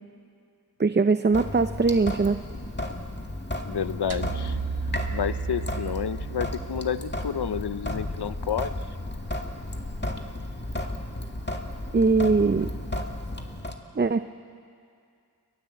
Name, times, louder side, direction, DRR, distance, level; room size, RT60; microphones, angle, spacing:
voice 1, 0.8-2.4 11.9-12.7 14.0-14.3, right 4 dB, 25° right, 10 dB, 0.6 m, -21 dB
Sink (filling or washing) / Drip, 1.3-13.8, left 1 dB, 25° left, 2.1 m, -34 dB
voice 2, 3.7-4.6 5.1-8.7, left 8 dB, 85° left, 14 dB, 0.8 m, -30 dB
sound 1, 4.1-8.5, right 5 dB, 80° right, 1.2 m, -34 dB
30.0 x 21.0 x 7.9 m, 2.4 s
wide cardioid pair, 75°, 39 cm